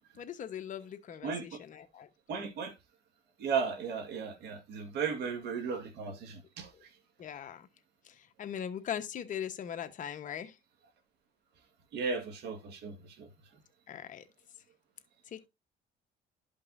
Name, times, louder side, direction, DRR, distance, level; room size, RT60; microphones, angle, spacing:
voice 1, 0.2-2.5 6.7-6.8 7.2-7.7 8.0-10.6 13.9-14.2 15.3-15.5, left 9 dB, 50° left, 1.1 m, -40 dB
voice 2, 1.2-1.6 2.3-2.7 3.4-6.9 11.9-13.3, right 5 dB, 75° right, 1.7 m, -35 dB
12.0 x 5.3 x 2.6 m
cardioid pair, 110°, 17 cm